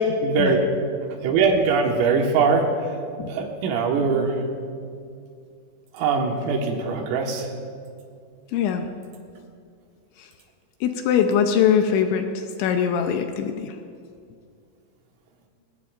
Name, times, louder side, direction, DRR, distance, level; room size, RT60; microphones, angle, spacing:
voice 1, 0.2-0.6 1.2-2.7 3.2-4.4 5.9-7.5, right 4 dB, 85° right, 2 dB, 4.1 m, -21 dB
voice 2, 8.5-8.9 10.2-10.3 10.8-13.8, left 8 dB, 80° left, 6 dB, 2.8 m, -22 dB
21.5 x 19.5 x 2.6 m, 2.3 s
omnidirectional pair, 5.8 m